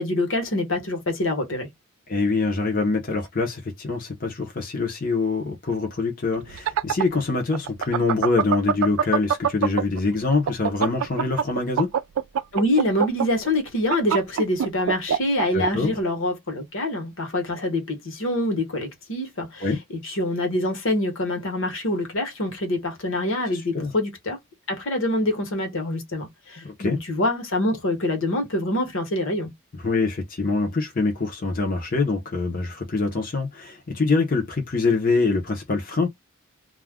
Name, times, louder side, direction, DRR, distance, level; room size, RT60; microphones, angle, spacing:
voice 1, 0.0-1.7 12.5-19.7 20.0-24.4 24.7-29.5, left 1 dB, 60° left, 1.1 m, -25 dB
voice 2, 2.1-11.9 15.5-16.0 19.6-19.8 23.5-23.9 26.6-27.0 29.7-36.1, left 3 dB, 40° left, 0.7 m, -24 dB
sound 1, 6.4-10.0 10.3-15.7, right 7 dB, 75° right, 0.3 m, -23 dB
2.4 x 2.2 x 3.4 m
head